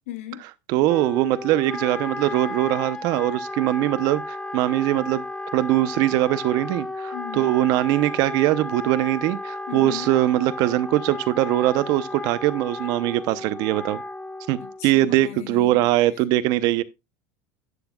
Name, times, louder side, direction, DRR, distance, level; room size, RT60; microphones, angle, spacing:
voice 1, 0.1-0.4 7.1-7.5 9.7-10.1 14.6-15.9 16.1-16.2, left 14 dB, 85° left, 1.4 m, -37 dB
voice 2, 0.7-5.2 5.5-14.0 14.5-16.8, right 15 dB, 60° right, 0.8 m, -22 dB
Wind instrument woodwind instrument, 0.9-14.9, left 2 dB, 10° left, 0.7 m, -34 dB
11.5 x 9.1 x 2.4 m
supercardioid pair, 115°, 7 cm